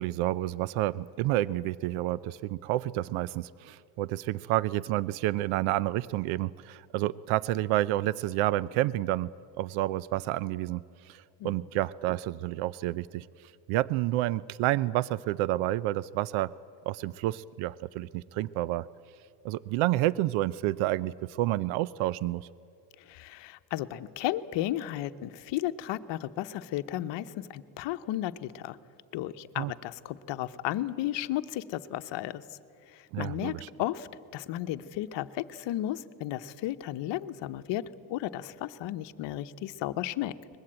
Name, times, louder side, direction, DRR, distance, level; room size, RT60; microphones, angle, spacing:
voice 1, 0.0-9.3 9.6-13.3 13.7-16.5 16.9-18.9 19.4-22.5 29.6-29.7 33.1-33.7, right 15 dB, 85° right, 20 dB, 0.6 m, -29 dB
voice 2, 23.0-28.8 29.1-32.6 32.9-34.1 34.3-37.8 38.1-40.3, left 14 dB, 65° left, 11 dB, 0.9 m, -34 dB
22.5 x 20.5 x 8.8 m, 2.4 s
cardioid pair, 150°, 47 cm